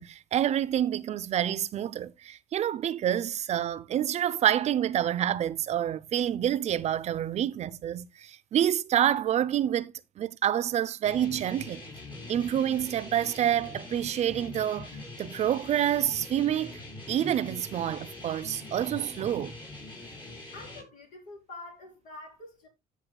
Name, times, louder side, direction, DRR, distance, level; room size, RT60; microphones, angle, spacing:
voice 1, 0.0-11.8 12.3-14.9 15.2-16.8 17.1-19.5, right 10 dB, 55° right, 0.6 m, -28 dB
sound 1, 11.0-20.8, left 2 dB, 35° left, 5.0 m, -43 dB
voice 2, 20.3-22.7, left 2 dB, 70° left, 4.2 m, -46 dB
15.5 x 6.2 x 2.2 m
supercardioid pair, 85°, 14 cm